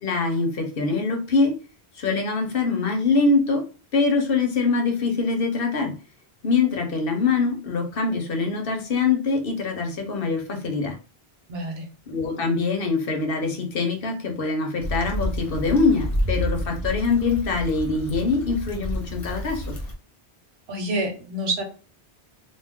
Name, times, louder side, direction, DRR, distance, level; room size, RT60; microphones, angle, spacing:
voice 1, 0.0-1.6 2.0-3.6 3.9-5.9 6.4-10.9 12.1-19.7, left 4 dB, 65° left, 2 dB, 0.9 m, -23 dB
voice 2, 11.5-11.9 20.7-21.6, right 1 dB, 75° right, 2 dB, 1.1 m, -27 dB
Stream / Traffic noise roadway noise / Trickle dribble, 14.8-19.9, equal, 35° left, 0.9 m, -29 dB
2.3 x 2.3 x 3.5 m, 0.35 s
omnidirectional pair, 1.0 m